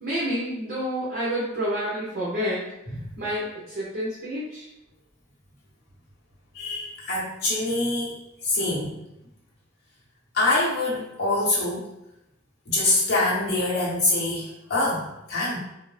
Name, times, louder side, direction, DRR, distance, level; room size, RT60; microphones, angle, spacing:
voice 1, 0.0-2.6 3.2-4.6, equal, 50° right, -8 dB, 0.7 m, -29 dB
voice 2, 6.5-8.2 8.4-9.0 10.3-11.8 12.7-15.6, left 2 dB, 50° left, -8 dB, 0.9 m, -25 dB
2.6 x 2.0 x 3.1 m, 0.87 s
head